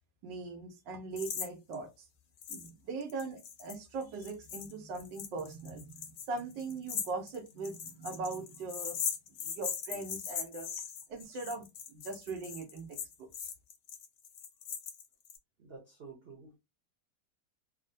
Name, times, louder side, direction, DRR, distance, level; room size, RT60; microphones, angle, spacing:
voice 1, 0.2-2.1 2.5-9.0 9.3-10.7 11.1-13.5, right 3 dB, 90° right, 5 dB, 1.4 m, -40 dB
sound 1, 1.2-1.5 1.7-1.8 2.4-2.7 3.0-15.4, left 7 dB, 75° left, 1.3 m, -40 dB
voice 2, 15.6-16.6, right 4 dB, 50° right, -1 dB, 0.7 m, -50 dB
3.4 x 2.1 x 2.6 m, 0.23 s
omnidirectional pair, 1.9 m